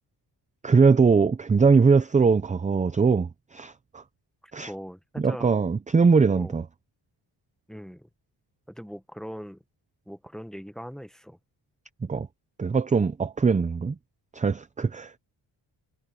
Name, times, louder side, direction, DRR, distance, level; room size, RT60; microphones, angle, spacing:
voice 1, 0.6-3.3 3.5-4.0 4.5-4.7 5.2-6.6 12.1-12.3 12.6-13.9 14.4-15.2, right 5 dB, 20° right, 0.4 m, -21 dB
voice 2, 4.7-5.5 6.4-6.6 7.7-8.1 8.7-9.6 10.1-11.4, equal, ahead, 0.8 m, -40 dB
wide cardioid pair, 175°, 46 cm